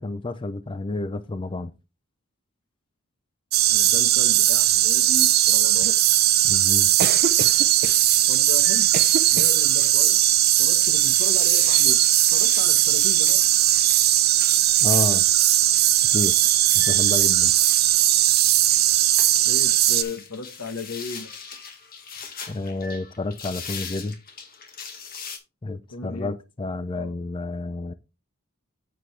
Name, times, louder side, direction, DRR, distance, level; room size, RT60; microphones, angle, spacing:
voice 1, 0.0-1.7 6.4-6.9 14.8-15.2 16.1-16.4 16.7-17.5 22.5-24.2 25.6-27.9, left 2 dB, 25° left, 0.5 m, -30 dB
sound 1, 3.5-20.0, right 13 dB, 45° right, 0.7 m, -19 dB
voice 2, 3.7-5.9 8.1-8.9 9.3-10.2 10.6-12.0 12.3-13.5 19.4-21.3 25.9-26.3 26.9-27.1, left 3 dB, 90° left, 1.4 m, -35 dB
sound 2, 7.8-25.4, left 5 dB, 45° left, 1.8 m, -42 dB
7.9 x 7.5 x 3.3 m
head